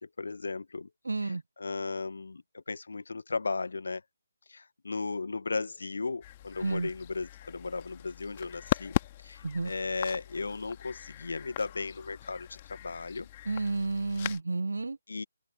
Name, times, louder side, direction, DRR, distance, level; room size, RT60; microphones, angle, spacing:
voice 1, 0.0-0.9 1.2-4.0 4.5-8.9 9.2-13.3 15.1-15.2, left 4 dB, 60° left, 1.5 m, -36 dB
voice 2, 1.0-1.4 6.6-6.9 9.4-9.7 13.5-15.0, right 3 dB, 65° right, 1.0 m, -31 dB
sound 1, 6.2-14.4, left 14 dB, 25° left, 2.3 m, -38 dB
open air
figure-of-eight pair, 145°, 0 cm